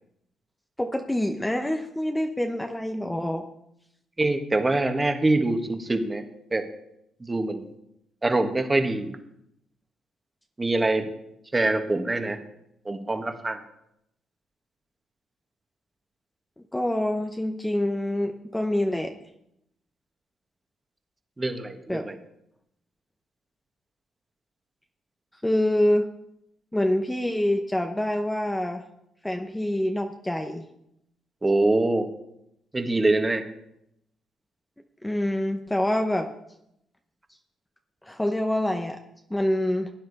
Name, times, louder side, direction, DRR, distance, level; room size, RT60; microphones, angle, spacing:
voice 1, 0.8-3.4 16.7-19.1 21.9-22.1 25.4-26.1 26.7-28.8 29.2-30.6 35.0-36.3 38.0-39.0 39.3-39.9, left 1 dB, 10° left, 5 dB, 0.9 m, -26 dB
voice 2, 4.2-6.2 6.5-6.7 7.2-7.6 8.2-9.1 10.6-11.1 11.5-12.4 12.8-13.6 21.4-22.1 31.4-32.1 32.7-33.4, right 2 dB, 20° right, 6 dB, 1.6 m, -24 dB
16.0 x 9.4 x 4.1 m, 0.79 s
cardioid pair, 90°, 0 cm